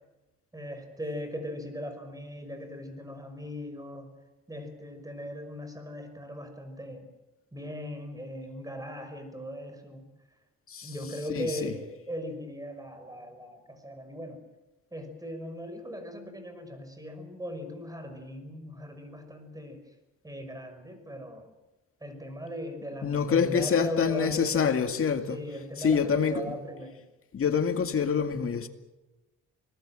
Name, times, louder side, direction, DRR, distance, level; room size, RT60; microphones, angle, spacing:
voice 1, 0.5-4.1 4.5-7.1 7.5-10.0 10.8-14.4 14.9-19.8 20.2-21.5 22.0-24.8 25.3-27.0, equal, 10° right, 5.7 m, -39 dB
voice 2, 11.3-11.7 23.0-25.4 25.8-26.5 27.3-28.7, left 6 dB, 45° left, 2.2 m, -26 dB
25.5 x 19.5 x 7.8 m
cardioid pair, 90°, 30 cm